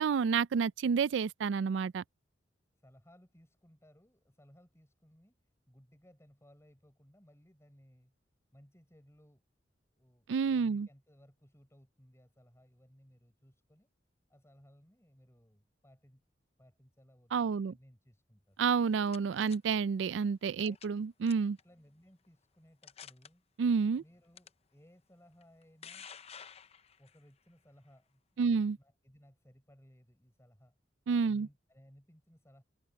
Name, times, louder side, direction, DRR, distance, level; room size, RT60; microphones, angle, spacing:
voice 1, 0.0-2.0 10.3-10.9 17.3-17.7 18.6-21.6 23.6-24.0 28.4-28.8 31.1-31.5, right 5 dB, 75° right, 0.4 m, -29 dB
voice 2, 2.8-5.4 5.7-8.1 8.5-9.4 9.9-13.9 14.3-16.2 16.6-18.6 20.6-20.8 21.6-23.4 24.0-26.1 27.0-30.7 31.2-32.6, equal, 15° left, 6.7 m, -62 dB
sound 1, 18.7-19.6 20.6-21.0 21.3-21.6 22.2-22.3 22.8-23.3 24.4-24.5 25.4-27.2, left 7 dB, 35° left, 0.6 m, -50 dB
head